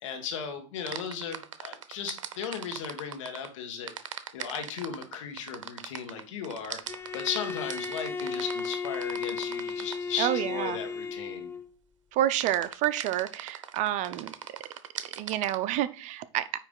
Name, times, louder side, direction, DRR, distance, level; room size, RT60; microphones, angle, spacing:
voice 1, 0.0-3.9 4.3-6.8 7.1-11.5, left 7 dB, 75° left, 5 dB, 1.9 m, -36 dB
sound 1, 0.9-3.5 3.9-10.1 12.4-15.6, right 9 dB, 85° right, 0.7 m, -40 dB
Bowed string instrument, 6.9-11.7, left 5 dB, 15° left, 0.8 m, -34 dB
voice 2, 10.2-10.8 12.1-14.3 15.1-16.4, right 13 dB, 50° right, 14 dB, 0.7 m, -29 dB
9.1 x 3.3 x 5.3 m, 0.36 s
hypercardioid pair, 95°, 16 cm